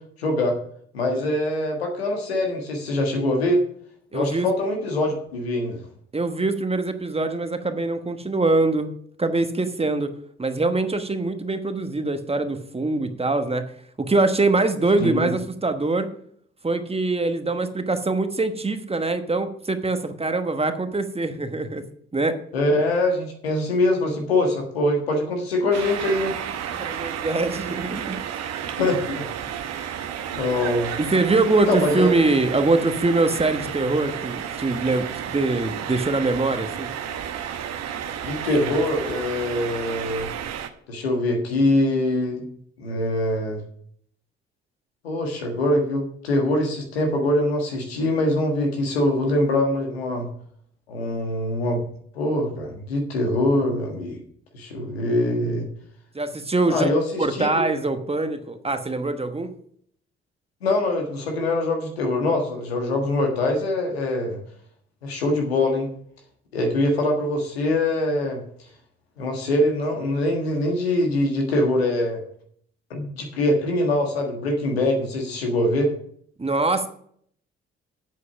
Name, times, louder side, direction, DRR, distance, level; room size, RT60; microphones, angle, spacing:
voice 1, 0.2-0.5 0.9-3.6 4.1-5.8 15.0-15.3 22.5-26.4 28.8-29.2 30.3-30.9 31.5-32.1 38.2-40.3 40.9-42.4 42.8-43.6 45.0-50.3 50.9-51.9 52.1-54.2 54.5-55.7 56.7-57.5 60.6-64.4 65.0-65.9 66.5-68.4 69.2-72.2 72.9-75.9, left 1 dB, 85° left, 3 dB, 1.5 m, -23 dB
voice 2, 4.1-4.5 6.1-8.9 9.2-10.1 10.4-13.7 14.0-16.1 16.6-21.8 22.1-22.4 26.7-28.2 31.0-36.9 56.1-56.9 57.2-59.5 76.4-76.9, right 3 dB, 20° right, 8 dB, 1.2 m, -23 dB
sound 1, 25.7-40.7, right 9 dB, 60° right, 1.0 m, -32 dB
8.2 x 7.5 x 5.8 m, 0.63 s
figure-of-eight pair, 40°, 30 cm